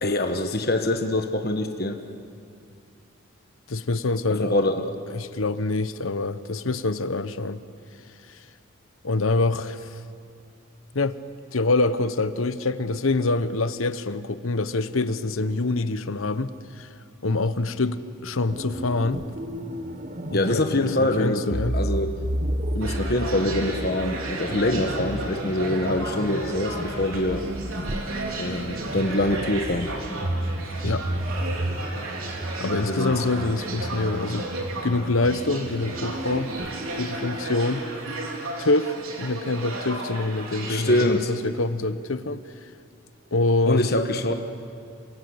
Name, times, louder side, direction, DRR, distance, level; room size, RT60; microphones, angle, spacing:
voice 1, 0.0-2.0 4.3-4.9 20.3-22.1 22.7-27.5 28.4-29.9 32.9-33.2 40.6-41.3 43.7-44.3, left 1 dB, 45° left, 5 dB, 1.3 m, -24 dB
voice 2, 3.7-4.5 5.1-7.6 9.0-10.0 10.9-11.2 11.5-16.9 17.2-19.2 20.3-21.7 30.8-31.1 32.6-34.5 34.8-36.5 36.9-37.9 38.6-42.4 43.3-43.9, left 3 dB, 80° left, 12 dB, 1.0 m, -25 dB
sound 1, 18.5-37.5, right 1 dB, 35° right, 1.1 m, -32 dB
sound 2, 22.8-41.1, right 2 dB, 85° right, 4.0 m, -34 dB
28.0 x 26.0 x 8.0 m, 2.5 s
head